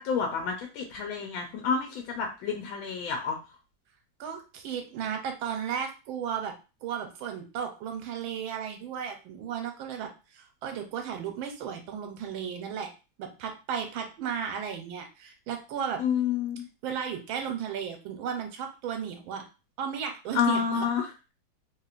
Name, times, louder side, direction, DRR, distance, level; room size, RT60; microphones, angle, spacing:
voice 1, 0.0-3.4 16.0-16.6 20.3-21.0, left 6 dB, 80° left, 2 dB, 1.4 m, -29 dB
voice 2, 4.2-6.5 6.8-12.9 13.2-16.0 16.8-19.5 19.8-20.9, right 8 dB, 80° right, 4 dB, 1.4 m, -34 dB
3.2 x 2.9 x 2.4 m, 0.31 s
omnidirectional pair, 2.2 m